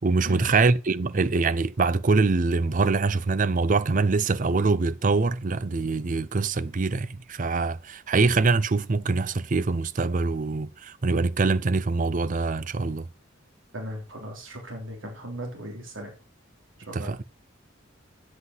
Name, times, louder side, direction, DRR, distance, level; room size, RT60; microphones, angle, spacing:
voice 1, 0.0-13.1 16.9-17.2, right 3 dB, 40° right, 0.5 m, -24 dB
voice 2, 13.7-16.1 16.8-17.1, equal, 75° right, 3.3 m, -37 dB
8.2 x 8.0 x 5.5 m
head